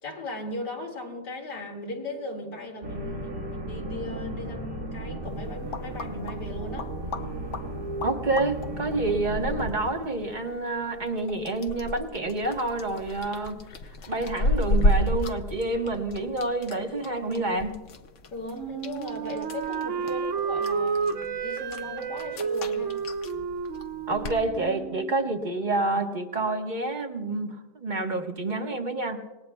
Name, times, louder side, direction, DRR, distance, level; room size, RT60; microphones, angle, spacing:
voice 1, 0.0-6.9 18.3-23.0, left 1 dB, 70° left, 0 dB, 2.8 m, -37 dB
sound 1, 2.8-9.7, right 1 dB, 75° right, 2.7 m, -35 dB
sound 2, 5.2-24.4, left 1 dB, 55° left, 1.0 m, -33 dB
voice 2, 8.0-13.6 14.1-17.8 24.1-29.2, right 2 dB, 30° right, 4 dB, 1.0 m, -28 dB
Wind instrument woodwind instrument, 18.5-25.4, right 6 dB, 60° right, 0.8 m, -31 dB
26.5 x 19.5 x 2.3 m, 1.2 s
omnidirectional pair, 1.9 m